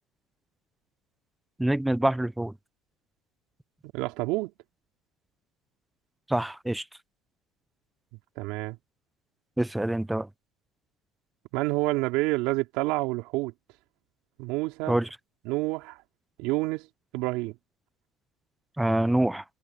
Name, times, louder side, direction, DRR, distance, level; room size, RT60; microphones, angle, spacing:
voice 1, 1.6-2.5 6.3-6.8 9.6-10.3 14.9-15.1 18.8-19.4, right 1 dB, 5° right, 0.7 m, -25 dB
voice 2, 3.9-4.5 8.4-8.8 11.5-13.5 14.4-15.0 15.4-16.0 16.4-16.9 17.1-17.6, right 21 dB, 70° right, 3.3 m, -28 dB
supercardioid pair, 115°, 0 cm